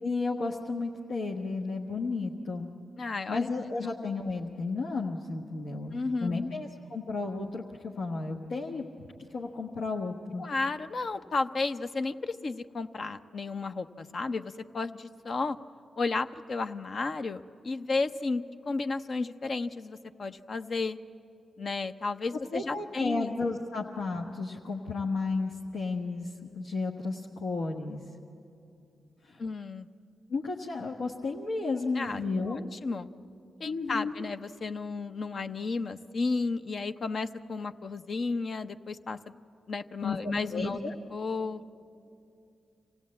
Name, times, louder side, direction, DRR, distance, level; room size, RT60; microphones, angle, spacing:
voice 1, 0.0-2.7 3.3-5.9 6.2-8.8 9.3-10.4 22.5-28.0 29.2-29.4 30.3-32.7 33.6-34.2 40.0-40.2 40.5-40.9, left 3 dB, 80° left, -1 dB, 1.3 m, -33 dB
voice 2, 3.0-3.5 5.9-6.5 10.4-15.6 16.0-21.0 21.6-23.3 29.4-29.9 32.0-33.1 33.6-39.2 39.7-40.8 41.1-41.6, left 3 dB, 55° left, 9 dB, 0.7 m, -33 dB
26.0 x 16.5 x 8.6 m, 2.6 s
supercardioid pair, 45°, 0 cm